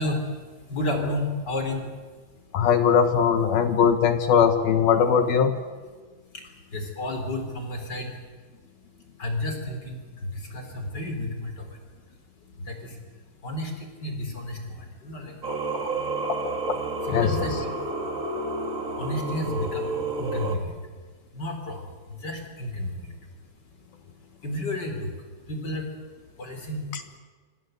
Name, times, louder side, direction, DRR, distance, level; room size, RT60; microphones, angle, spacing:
voice 1, 0.0-1.8 6.3-8.2 9.2-11.8 12.6-13.0 13.4-15.4 17.0-17.8 18.9-20.8 21.3-23.3 24.4-25.1 25.5-25.9 26.4-26.9, left 1 dB, 25° left, 5 dB, 3.9 m, -32 dB
voice 2, 2.5-5.6 15.5-15.6 16.2-16.8 17.1-17.6 26.9-27.0, left 7 dB, 65° left, 8 dB, 2.6 m, -21 dB
Singing, 15.4-20.5, right 2 dB, 45° right, 1.0 m, -30 dB
26.5 x 26.0 x 8.1 m, 1.4 s
omnidirectional pair, 5.4 m